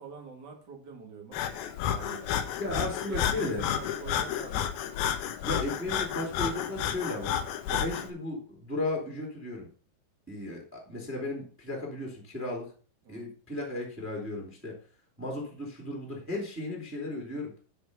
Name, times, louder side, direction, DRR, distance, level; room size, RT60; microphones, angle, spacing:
voice 1, 0.0-1.4 1.9-4.7 13.0-13.3, right 5 dB, 40° right, 2 dB, 1.6 m, -44 dB
Breathing, 1.3-8.1, left 10 dB, 75° left, 2.7 m, -31 dB
voice 2, 2.6-3.6 5.4-7.4 7.7-9.7 10.3-12.7 13.1-14.8 15.2-17.5, left 2 dB, 5° right, 0 dB, 2.0 m, -35 dB
9.9 x 5.1 x 5.3 m, 0.41 s
omnidirectional pair, 4.7 m